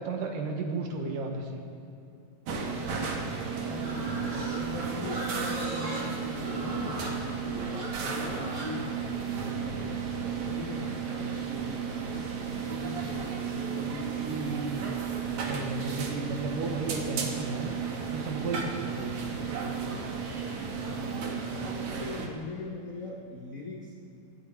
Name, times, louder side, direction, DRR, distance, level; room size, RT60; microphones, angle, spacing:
voice 1, 0.0-1.6 14.2-14.8 15.5-19.2, right 3 dB, 85° right, 2 dB, 2.9 m, -34 dB
sound 1, 2.5-22.3, right 6 dB, 65° right, 2.6 m, -34 dB
voice 2, 3.5-7.6 8.0-12.3 12.6-14.6 15.8-16.1 20.6-23.9, left 2 dB, 65° left, -1 dB, 0.8 m, -41 dB
Livestock farm animals working animals, 3.8-9.8, right 1 dB, 35° right, 2.7 m, -38 dB
25.0 x 9.2 x 4.3 m, 2.7 s
omnidirectional pair, 3.7 m